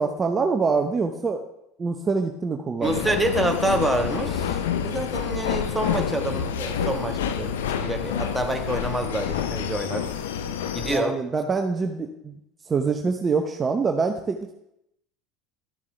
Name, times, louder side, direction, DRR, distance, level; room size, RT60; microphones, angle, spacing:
voice 1, 0.0-1.4 1.8-3.0 10.8-12.3 12.7-14.5, right 4 dB, 30° right, 4 dB, 0.8 m, -25 dB
sound 1, 2.8-11.0, left 8 dB, 80° left, 0.6 m, -28 dB
voice 2, 2.8-7.6 7.8-10.1 10.7-11.2, right 1 dB, 5° right, 4 dB, 1.3 m, -27 dB
12.5 x 7.3 x 3.3 m, 0.83 s
hypercardioid pair, 75°, 0 cm